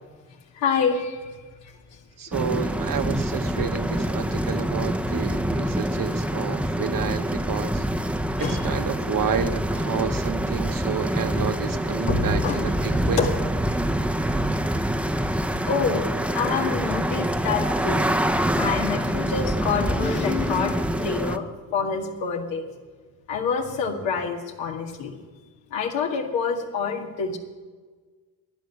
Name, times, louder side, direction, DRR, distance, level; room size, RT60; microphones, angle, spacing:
voice 1, 0.5-1.7 3.6-3.7 8.4-8.7 11.4-11.5 12.1-12.6 13.2-13.3 15.7-16.1 16.3-18.1 18.5-22.6 23.3-25.1 25.7-27.4, left 5 dB, 80° left, 2 dB, 2.0 m, -27 dB
voice 2, 2.2-7.8 8.4-13.2, right 7 dB, 45° right, 9 dB, 1.2 m, -30 dB
sound 1, 2.3-21.4, right 1 dB, 5° right, 0.8 m, -25 dB
11.5 x 10.5 x 8.1 m, 1.4 s
hypercardioid pair, 55°, 44 cm